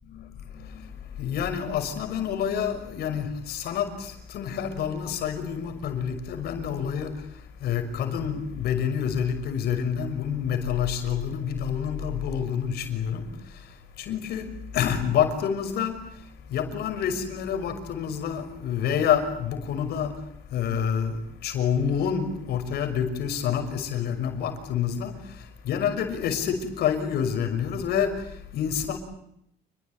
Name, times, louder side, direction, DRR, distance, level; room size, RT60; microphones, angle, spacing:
voice 1, 0.1-29.0, left 8 dB, 70° left, 6.2 m, -28 dB
29.5 x 21.5 x 9.2 m
cardioid pair, 110°, 17 cm